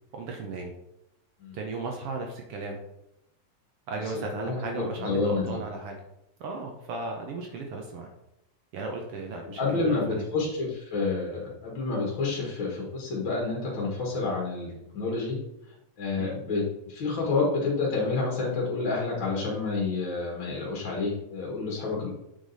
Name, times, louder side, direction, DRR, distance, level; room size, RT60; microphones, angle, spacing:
voice 1, 0.1-0.7 1.5-2.8 3.9-6.0 6.4-8.1 8.7-10.3 16.2-16.4, right 3 dB, 75° right, 2 dB, 1.3 m, -36 dB
voice 2, 4.3-5.6 9.6-15.4 16.0-22.1, left 3 dB, 45° left, -3 dB, 1.8 m, -29 dB
7.8 x 5.0 x 4.0 m, 0.83 s
omnidirectional pair, 3.7 m